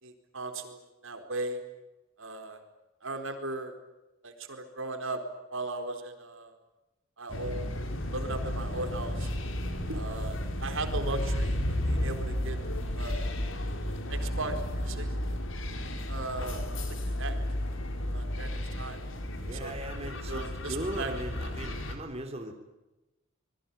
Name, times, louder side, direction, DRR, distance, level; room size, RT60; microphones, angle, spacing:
voice 1, 0.0-1.6 2.2-2.6 3.0-3.7 4.2-5.2 5.5-6.5 7.2-7.7 8.1-9.3 9.9-12.6 12.9-13.3 14.1-15.1 16.1-16.6 17.2-17.4 18.1-19.0 19.5-19.8 20.3-21.1 21.6-21.7, right 2 dB, 70° right, 6 dB, 4.4 m, -37 dB
sound 1, 7.3-21.9, left 1 dB, 65° left, 4.1 m, -33 dB
voice 2, 19.5-22.5, right 1 dB, 30° right, 3 dB, 3.5 m, -38 dB
26.5 x 22.0 x 8.8 m, 1.0 s
head